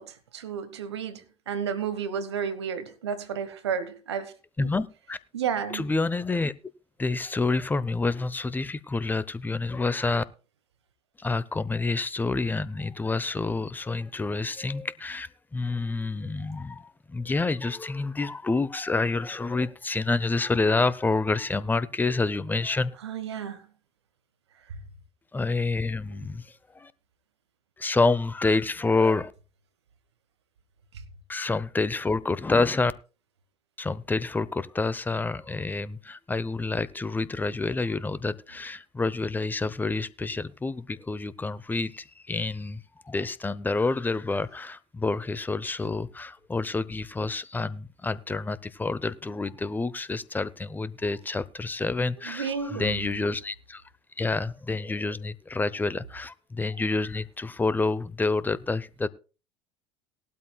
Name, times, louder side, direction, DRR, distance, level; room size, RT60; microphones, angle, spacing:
voice 1, 0.0-4.3 5.3-5.8 23.0-23.6 52.2-53.2, right 7 dB, 80° right, 1.3 m, -32 dB
voice 2, 4.6-5.2 5.7-6.5 7.0-10.2 11.2-22.9 25.3-26.9 27.8-29.3 31.3-32.9 33.8-53.8 54.2-59.1, left 3 dB, 15° left, 0.8 m, -28 dB
18.5 x 12.5 x 2.3 m
hypercardioid pair, 70°, 14 cm